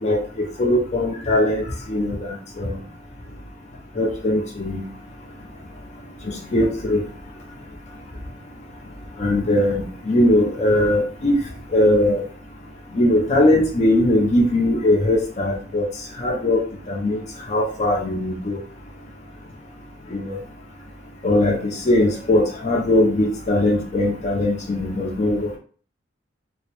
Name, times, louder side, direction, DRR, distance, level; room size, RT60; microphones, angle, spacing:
voice 1, 0.0-2.8 4.0-4.8 6.3-7.0 9.2-11.4 11.7-12.2 12.9-15.8 16.2-16.6 16.9-17.2 17.5-18.6 20.1-20.4 21.2-21.6 21.9-25.5, left 1 dB, 40° left, -1 dB, 0.5 m, -20 dB
2.2 x 2.0 x 2.9 m, 0.43 s
head